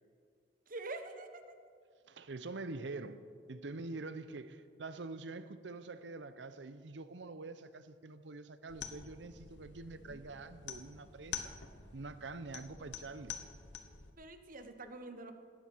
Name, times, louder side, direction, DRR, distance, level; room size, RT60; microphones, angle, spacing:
voice 1, 0.7-1.4 10.1-10.2 14.2-15.3, right 2 dB, 50° right, 1.1 m, -45 dB
voice 2, 2.1-3.2 3.5-11.6 11.9-13.4, right 3 dB, 75° right, 0.7 m, -45 dB
sound 1, 8.7-14.1, left 7 dB, 80° left, 1.1 m, -47 dB
17.5 x 13.0 x 4.6 m
head